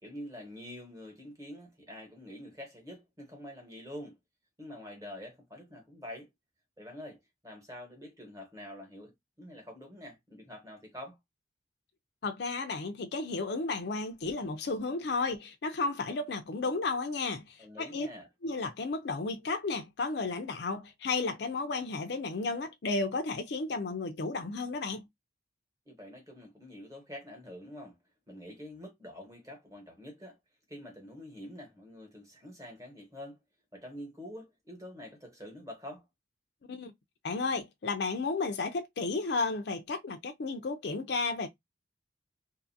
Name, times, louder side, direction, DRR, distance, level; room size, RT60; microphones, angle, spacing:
voice 1, 0.0-4.2 4.6-6.3 6.8-11.2 17.6-18.3 25.9-28.0 28.3-30.4 30.7-33.4 33.7-36.1, left 1 dB, 15° right, 1.1 m, -46 dB
voice 2, 12.2-18.1 18.4-25.0 36.7-36.9 37.2-41.5, left 3 dB, 60° left, 0.4 m, -33 dB
2.6 x 2.5 x 2.6 m
head